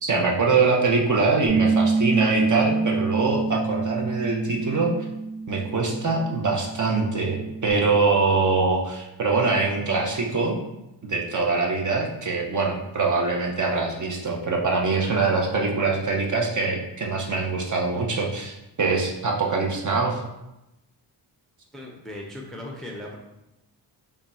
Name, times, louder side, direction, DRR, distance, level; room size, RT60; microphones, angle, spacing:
voice 1, 0.0-4.9 5.5-10.6 11.0-20.2, right 4 dB, 45° right, 0 dB, 0.7 m, -23 dB
Bass guitar, 1.5-7.7, right 4 dB, 80° right, 0.7 m, -26 dB
voice 2, 21.7-23.2, left 1 dB, ahead, -1 dB, 0.5 m, -37 dB
3.6 x 2.3 x 4.1 m, 0.92 s
cardioid pair, 95°, 44 cm